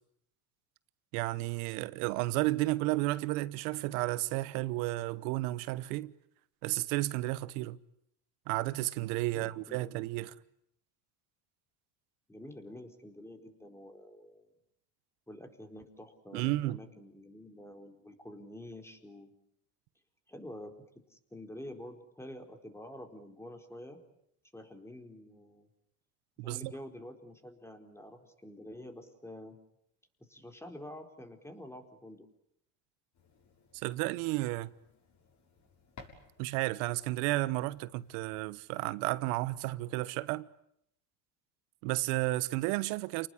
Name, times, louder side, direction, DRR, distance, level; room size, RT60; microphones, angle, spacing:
voice 1, 1.1-6.1 6.6-7.8 8.5-10.3 16.3-16.8 26.4-26.7 33.7-34.7 36.4-40.5 41.8-43.3, right 19 dB, 75° right, 1.2 m, -32 dB
voice 2, 9.3-10.3 12.3-14.5 15.3-19.3 20.3-24.0 24.5-25.7 26.4-29.6 30.2-32.3, left 1 dB, 5° left, 4.2 m, -48 dB
sound 1, 33.1-38.6, left 4 dB, 40° left, 7.0 m, -59 dB
29.5 x 19.5 x 9.9 m
supercardioid pair, 110°, 45 cm